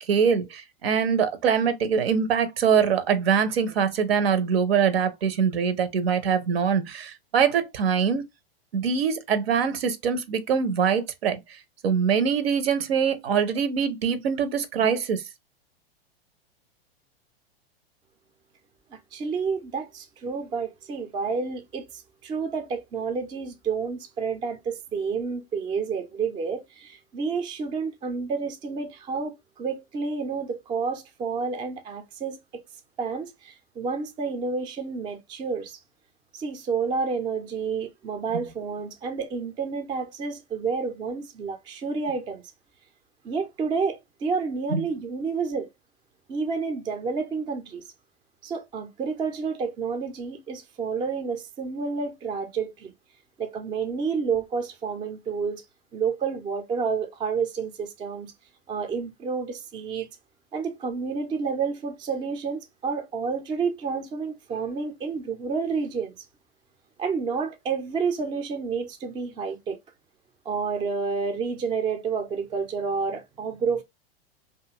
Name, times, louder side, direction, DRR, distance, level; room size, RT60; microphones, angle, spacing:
voice 1, 0.1-8.2 8.7-11.4 11.8-15.2 38.3-38.4 44.7-44.8, right 7 dB, 75° right, 0.7 m, -23 dB
voice 2, 18.9-32.6 33.0-35.8 36.3-42.4 43.2-45.7 46.3-47.8 48.4-52.9 53.4-55.6 55.9-58.3 58.7-60.1 60.5-66.1 67.0-69.8 70.5-73.8, right 5 dB, 15° right, 0.4 m, -30 dB
2.6 x 2.4 x 2.8 m
hypercardioid pair, 105°, 30 cm